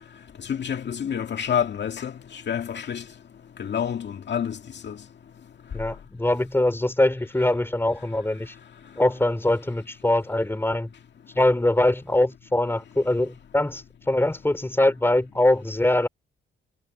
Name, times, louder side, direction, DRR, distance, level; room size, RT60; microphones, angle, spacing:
voice 1, 0.4-3.0 3.6-4.6 4.8-5.0, left 8 dB, 60° left, 2.1 m, -28 dB
voice 2, 5.7-8.5 9.0-10.9 11.3-16.1, left 1 dB, 10° left, 3.3 m, -23 dB
cardioid pair, 70°, 21 cm